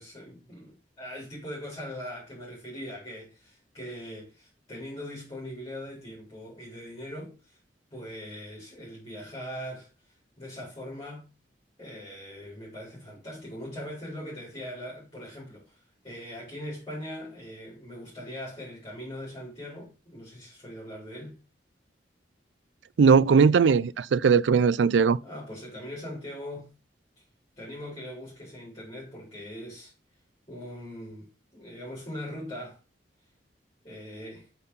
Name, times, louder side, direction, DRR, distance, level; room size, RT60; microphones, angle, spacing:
voice 1, 0.0-7.6 7.9-9.9 10.4-11.2 11.8-15.8 16.0-21.4 25.2-26.7 27.6-29.9 30.5-32.8 33.8-34.5, equal, 25° left, 4.2 m, -41 dB
voice 2, 23.0-25.2, right 5 dB, 80° right, 0.4 m, -19 dB
8.3 x 4.6 x 3.9 m
head